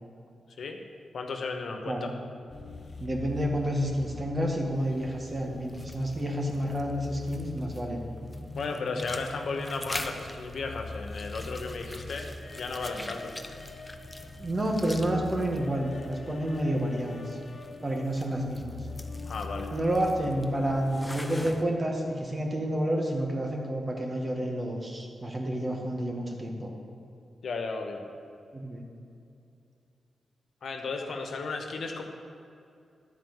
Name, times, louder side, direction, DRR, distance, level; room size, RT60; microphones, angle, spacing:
voice 1, 1.1-2.1 8.5-13.3 19.3-19.7 27.4-28.0 30.6-32.0, left 4 dB, 70° left, 4 dB, 1.0 m, -34 dB
voice 2, 1.9-2.2 3.0-8.0 14.4-17.4 17.8-18.8 19.7-26.7 28.5-28.8, right 1 dB, 35° right, 1 dB, 1.9 m, -29 dB
sound 1, 2.5-21.1, left 3 dB, 45° left, 1.0 m, -43 dB
sound 2, 4.7-21.6, left 1 dB, 10° left, 0.8 m, -45 dB
11.0 x 4.6 x 8.0 m, 2.6 s
cardioid pair, 55°, 0 cm